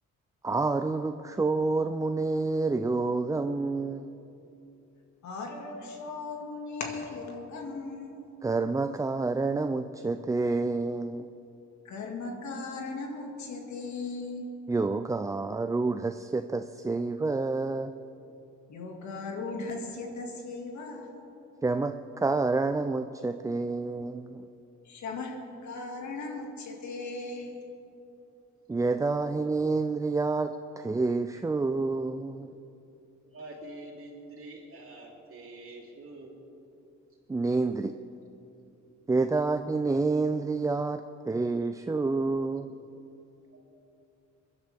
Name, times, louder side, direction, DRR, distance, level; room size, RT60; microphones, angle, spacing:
voice 1, 0.4-4.1 8.4-11.3 14.7-17.9 21.6-24.5 28.7-32.5 37.3-38.0 39.1-42.7, right 3 dB, 10° right, 8 dB, 0.3 m, -28 dB
voice 2, 5.2-8.3 11.8-14.5 18.7-21.3 24.8-27.7, left 3 dB, 70° left, 2 dB, 2.1 m, -38 dB
voice 3, 33.3-36.4 39.3-39.5 43.5-43.6, right 2 dB, 45° right, -3 dB, 3.4 m, -46 dB
22.0 x 11.0 x 3.5 m, 2.8 s
cardioid pair, 90°, 30 cm